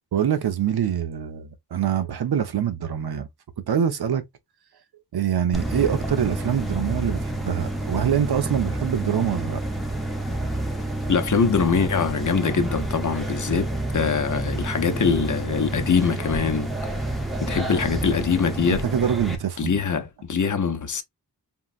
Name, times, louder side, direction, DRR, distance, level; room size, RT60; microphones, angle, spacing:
voice 1, 0.1-3.3 3.7-4.3 5.1-9.6 18.7-19.8, right 9 dB, 80° right, 0.6 m, -25 dB
sound 1, 5.5-19.4, right 1 dB, ahead, 0.7 m, -29 dB
voice 2, 11.1-16.7 17.4-18.8 19.6-21.0, left 6 dB, 50° left, 0.6 m, -23 dB
3.7 x 2.0 x 2.4 m
wide cardioid pair, 55°, 38 cm